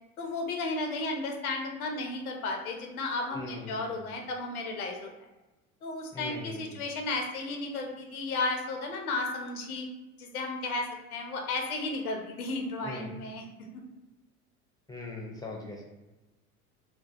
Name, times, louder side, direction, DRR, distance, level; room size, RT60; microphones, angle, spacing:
voice 1, 0.2-5.1 5.8-9.9 10.2-13.4, left 2 dB, 85° left, 2 dB, 0.7 m, -33 dB
voice 2, 3.3-4.0 6.1-6.8 12.8-13.1 14.9-15.9, left 2 dB, 10° left, -1 dB, 0.5 m, -41 dB
2.6 x 2.2 x 2.4 m, 1.1 s
hypercardioid pair, 85°, 43 cm